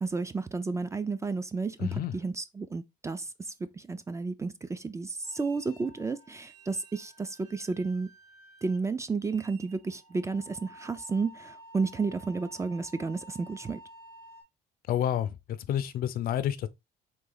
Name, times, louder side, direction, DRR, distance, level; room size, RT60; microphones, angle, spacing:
voice 1, 0.0-8.1 8.6-13.8, right 4 dB, 15° right, 0.4 m, -32 dB
voice 2, 1.8-2.1 14.9-16.7, left 10 dB, 60° left, 0.5 m, -29 dB
sound 1, 5.2-14.4, right 1 dB, 85° right, 2.6 m, -52 dB
3.9 x 2.8 x 3.9 m
cardioid pair, 110°, 17 cm